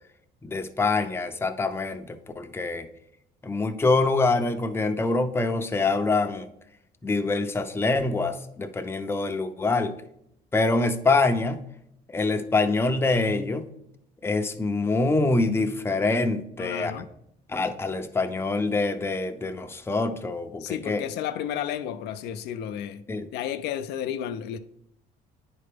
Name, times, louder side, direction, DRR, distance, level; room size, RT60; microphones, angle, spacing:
voice 1, 0.4-2.9 3.4-6.5 7.0-9.9 10.5-11.6 12.1-13.7 14.2-17.1 17.5-21.0 23.1-23.3, left 3 dB, 15° left, 0.6 m, -25 dB
voice 2, 16.6-17.1 20.6-23.0 23.3-24.6, left 10 dB, 80° left, 0.5 m, -32 dB
9.7 x 4.3 x 3.4 m
cardioid pair, 110°, 17 cm